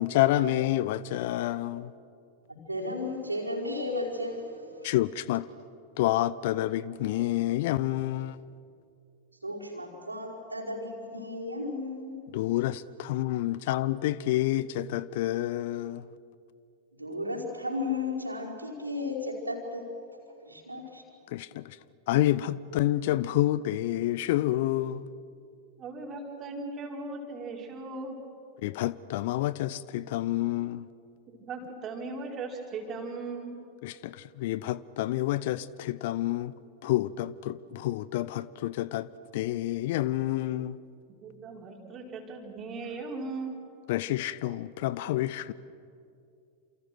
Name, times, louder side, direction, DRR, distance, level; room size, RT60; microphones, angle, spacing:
voice 1, 0.0-1.9 4.8-5.5 6.0-8.4 12.3-16.1 21.3-21.8 22.1-25.1 28.6-30.9 33.8-36.5 36.8-40.8 43.9-45.5, left 15 dB, 50° left, 0.7 m, -28 dB
voice 2, 2.5-5.0 9.4-12.2 17.0-19.9 20.4-21.0, left 2 dB, 85° right, 5.1 m, -34 dB
voice 3, 25.8-28.2 31.4-33.5 41.1-43.6, right 3 dB, 30° right, 4.9 m, -38 dB
29.0 x 28.5 x 6.2 m
figure-of-eight pair, 90°, 0 cm